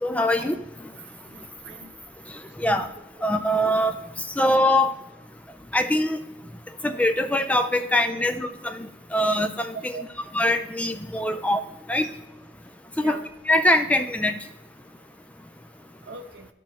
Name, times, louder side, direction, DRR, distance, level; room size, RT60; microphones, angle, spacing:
voice 1, 0.0-0.6 2.6-2.9 3.2-4.0 4.4-4.9 5.7-6.2 6.8-10.1 10.3-11.6 11.9-12.1 13.0-14.4, left 1 dB, 10° left, 7 dB, 0.3 m, -23 dB
voice 2, 1.3-1.9 2.7-2.9 4.0-4.1 8.0-8.1 9.7-10.0 12.0-12.1 13.0-13.2 16.1-16.5, right 4 dB, 90° right, 5 dB, 0.9 m, -40 dB
13.0 x 4.5 x 3.2 m, 0.96 s
head